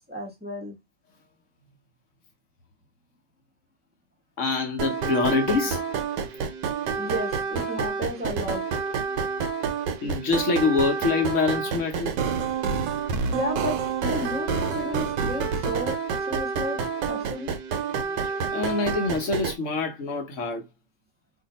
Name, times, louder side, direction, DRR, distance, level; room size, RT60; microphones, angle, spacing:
voice 1, 0.1-0.7 7.0-8.6 13.3-16.8 17.1-17.5, equal, 5° right, 0.8 m, -33 dB
voice 2, 4.4-5.8 10.0-12.1 18.5-20.6, left 4 dB, 55° left, 0.9 m, -25 dB
sound 1, 4.8-19.6, right 5 dB, 80° right, 1.3 m, -28 dB
2.7 x 2.7 x 3.9 m
omnidirectional pair, 1.9 m